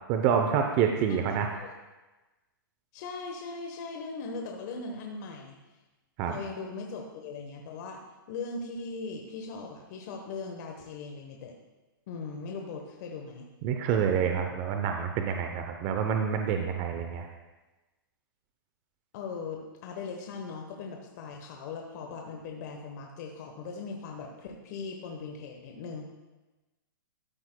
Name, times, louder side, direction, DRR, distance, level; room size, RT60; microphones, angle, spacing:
voice 1, 0.1-1.5 6.2-6.4 13.6-17.3, right 7 dB, 35° right, 4 dB, 0.7 m, -27 dB
voice 2, 2.9-5.6 6.3-8.0 8.3-11.5 12.1-13.5 19.1-26.1, left 4 dB, 50° left, 2 dB, 1.0 m, -39 dB
12.5 x 8.7 x 2.2 m, 1.1 s
hypercardioid pair, 140°, 12 cm